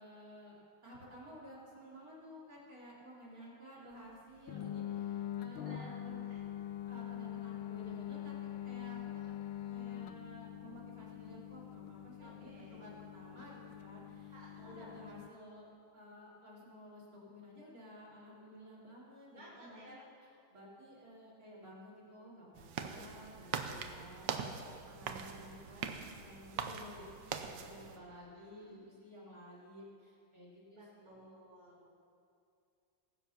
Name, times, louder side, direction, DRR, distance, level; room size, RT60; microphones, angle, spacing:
voice 1, 0.0-6.2 6.9-9.0 9.7-15.7 15.9-20.0 20.5-31.4, equal, 45° right, -7 dB, 3.9 m, -54 dB
sound 1, 4.5-15.3, left 11 dB, 80° left, 1.4 m, -44 dB
voice 2, 5.5-6.4 9.1-9.8 12.2-12.9 14.3-15.0 19.3-20.0 22.9-23.0 23.4-23.7 25.1-25.7 28.0-28.9 30.7-31.9, equal, 20° right, -6 dB, 1.9 m, -58 dB
sound 2, 22.6-28.0, right 7 dB, 65° right, 1.3 m, -42 dB
20.0 x 7.7 x 5.8 m, 2.5 s
omnidirectional pair, 2.3 m